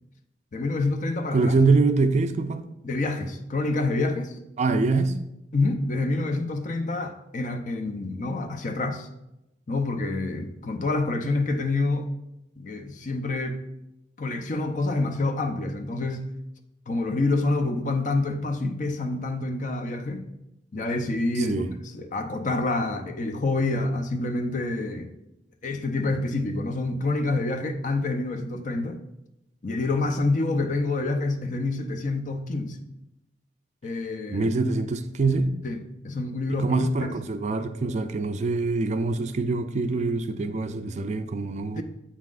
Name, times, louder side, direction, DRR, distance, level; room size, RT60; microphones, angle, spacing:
voice 1, 0.5-1.6 2.8-4.4 5.5-9.1 9.7-12.1 12.6-13.6 14.2-16.3 16.9-20.3 20.7-21.6 21.9-25.1 25.6-29.0 29.6-32.8 33.8-34.5 35.6-36.8 37.0-37.1 41.8-41.9, left 2 dB, 45° left, 0.6 m, -27 dB
voice 2, 1.3-2.6 4.6-5.2 21.4-21.7 34.3-35.5 36.5-41.8, right 3 dB, 40° right, 0.4 m, -24 dB
8.3 x 5.7 x 2.5 m
head